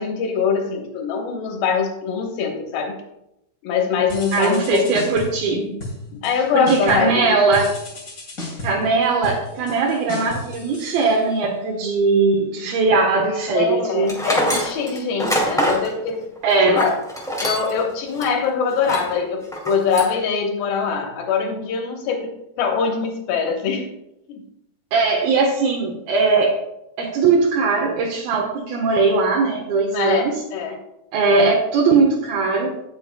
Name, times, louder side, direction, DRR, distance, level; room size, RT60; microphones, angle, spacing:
voice 1, 0.0-3.0 3.6-4.8 6.1-7.4 13.5-16.2 16.6-16.9 17.4-23.9 24.3-24.4 29.9-30.8, left 6 dB, 80° left, 2 dB, 3.0 m, -23 dB
sound 1, 4.1-5.5 5.8-6.4 6.7-7.2 7.5-11.5, left 1 dB, 25° left, 2.3 m, -34 dB
voice 2, 4.3-5.7 6.5-7.7 8.6-14.1 16.4-16.8 24.9-26.6 27.0-30.4 31.1-32.7, right 4 dB, 80° right, -1 dB, 3.0 m, -19 dB
Tools, 14.1-17.8 18.2-18.3 18.8-19.1 19.5-20.2, equal, ahead, 1.1 m, -24 dB
17.5 x 7.0 x 2.2 m, 0.87 s
omnidirectional pair, 4.2 m